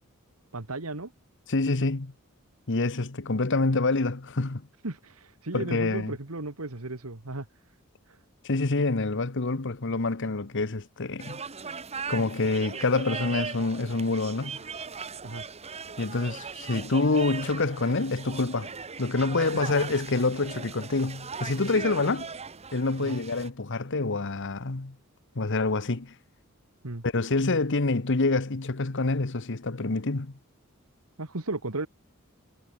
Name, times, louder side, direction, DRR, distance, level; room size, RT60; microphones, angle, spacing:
voice 1, 0.5-1.1 4.8-7.5 8.1-8.2 15.2-15.4 19.5-19.6 23.0-23.2 26.8-27.0 31.2-31.9, right 2 dB, 90° right, 2.1 m, -35 dB
voice 2, 1.5-2.1 2.7-4.7 5.5-6.2 8.4-11.4 12.1-14.6 16.0-18.7 19.0-22.3 22.7-25.0 25.3-26.1 27.0-30.3, left 3 dB, 60° left, 1.2 m, -27 dB
sound 1, 11.2-23.5, right 5 dB, 30° right, 1.2 m, -39 dB
head